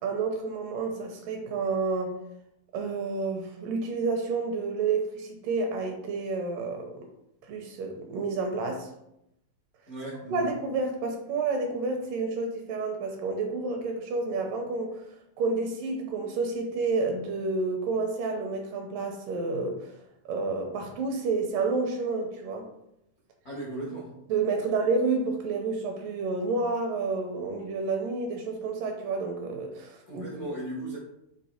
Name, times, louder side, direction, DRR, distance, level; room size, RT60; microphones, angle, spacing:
voice 1, 0.0-2.1 2.7-7.1 7.5-8.9 10.3-15.0 15.4-19.9 20.3-22.7 24.3-30.3, right 3 dB, 75° right, 3 dB, 2.2 m, -30 dB
voice 2, 9.9-10.5 23.4-24.1 30.1-31.0, right 2 dB, 70° left, -6 dB, 0.8 m, -36 dB
7.8 x 3.0 x 4.2 m, 0.81 s
omnidirectional pair, 4.3 m